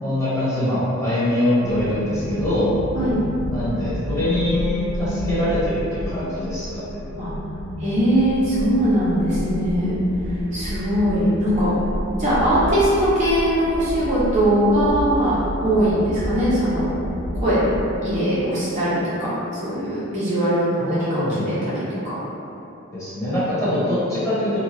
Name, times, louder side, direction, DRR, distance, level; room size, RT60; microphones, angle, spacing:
voice 1, 0.0-2.8 3.5-6.9 20.8-21.5 22.9-24.6, left 1 dB, 15° left, -13 dB, 1.0 m, -23 dB
sound 1, 1.6-18.0, equal, 70° left, 0.5 m, -30 dB
voice 2, 7.8-9.9 10.5-11.8 12.2-17.0 17.3-17.8 18.0-22.2, equal, 35° right, -12 dB, 0.7 m, -21 dB
2.7 x 2.3 x 3.0 m, 2.8 s
head